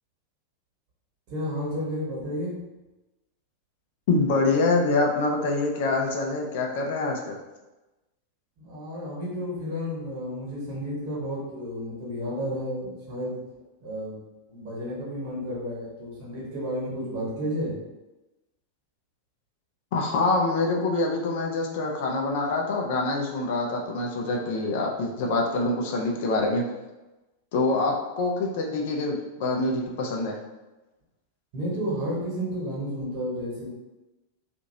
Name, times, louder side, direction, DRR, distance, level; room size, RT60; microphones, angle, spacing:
voice 1, 1.3-2.5 8.6-13.4 13.8-14.2 14.5-17.7 31.5-33.7, equal, 45° right, -5 dB, 1.3 m, -32 dB
voice 2, 4.1-7.4 19.9-26.6 27.5-30.4, left 3 dB, 50° left, 0 dB, 0.5 m, -25 dB
2.8 x 2.5 x 2.7 m, 1.1 s
figure-of-eight pair, 90°, 0 cm